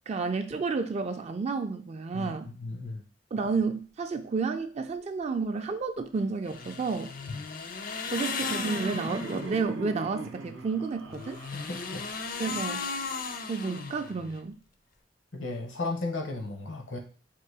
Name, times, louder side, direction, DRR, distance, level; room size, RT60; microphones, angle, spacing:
voice 1, 0.1-2.5 3.3-7.1 8.1-11.4 12.4-12.9 13.5-14.6, right 4 dB, 35° right, 7 dB, 0.3 m, -31 dB
voice 2, 2.1-3.0 7.3-7.4 11.5-12.0 15.3-17.0, left 2 dB, 80° left, 4 dB, 0.9 m, -35 dB
sound 1, 6.5-9.6 11.0-14.4, left 4 dB, 45° left, 0.5 m, -36 dB
Laughter, 7.6-12.6, right 2 dB, 85° right, 0.7 m, -41 dB
3.7 x 2.6 x 4.7 m, 0.38 s
head